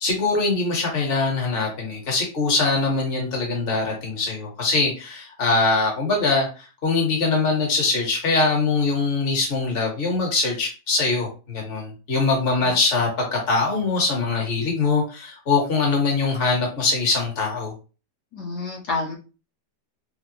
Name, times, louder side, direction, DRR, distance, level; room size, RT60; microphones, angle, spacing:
voice 1, 0.0-17.7, left 3 dB, 35° left, -1 dB, 1.3 m, -22 dB
voice 2, 18.3-19.1, left 3 dB, 85° left, -3 dB, 2.2 m, -28 dB
5.7 x 2.0 x 2.7 m, 0.33 s
omnidirectional pair, 1.8 m